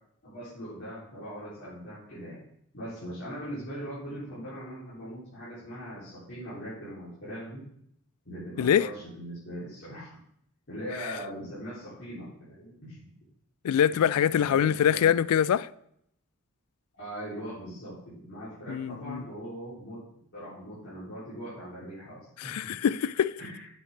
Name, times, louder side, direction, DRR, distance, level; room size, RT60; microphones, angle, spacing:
voice 1, 0.2-2.4 2.7-7.6 8.3-10.1 10.7-13.1 13.9-15.1 16.9-22.7 23.4-23.7, equal, 55° left, 3.6 m, -41 dB
voice 2, 8.6-8.9 13.6-15.7 18.7-19.2 22.4-23.4, left 9 dB, 85° left, 0.3 m, -24 dB
8.4 x 7.5 x 3.6 m
head